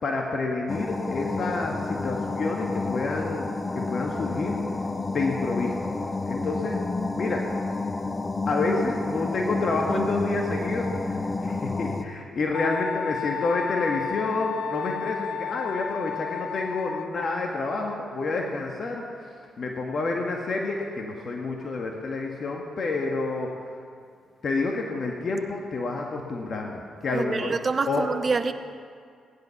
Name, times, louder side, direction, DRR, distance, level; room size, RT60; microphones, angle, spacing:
voice 1, 0.0-3.5 3.7-4.6 5.0-5.9 6.2-6.8 7.2-7.5 8.5-23.5 24.4-27.6 27.9-28.0, left 3 dB, 55° left, 1 dB, 1.7 m, -29 dB
sound 1, 0.7-12.0, left 3 dB, 25° left, 1.1 m, -30 dB
Wind instrument woodwind instrument, 12.5-17.5, left 9 dB, 75° left, 0.3 m, -33 dB
voice 2, 27.1-28.5, right 4 dB, 45° right, 10 dB, 1.1 m, -26 dB
17.0 x 11.0 x 5.9 m, 2.2 s
supercardioid pair, 50°, 0 cm